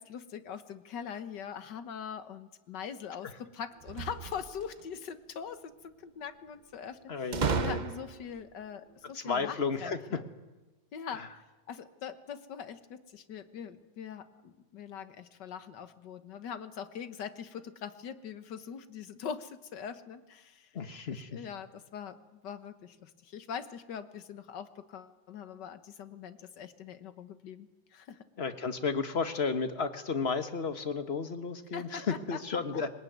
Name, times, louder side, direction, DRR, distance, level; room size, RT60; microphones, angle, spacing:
voice 1, 0.0-10.2 10.9-11.3 11.7-20.7 21.1-28.3 31.7-32.8, left 7 dB, 70° left, 11 dB, 1.8 m, -42 dB
sound 1, 3.8-4.9 7.3-8.4, right 6 dB, 55° right, 0.4 m, -33 dB
voice 2, 7.1-7.8 9.1-10.0 11.1-11.3 20.7-21.3 28.4-32.9, left 5 dB, 35° left, 9 dB, 1.5 m, -33 dB
22.0 x 19.5 x 9.4 m, 1.1 s
omnidirectional pair, 2.0 m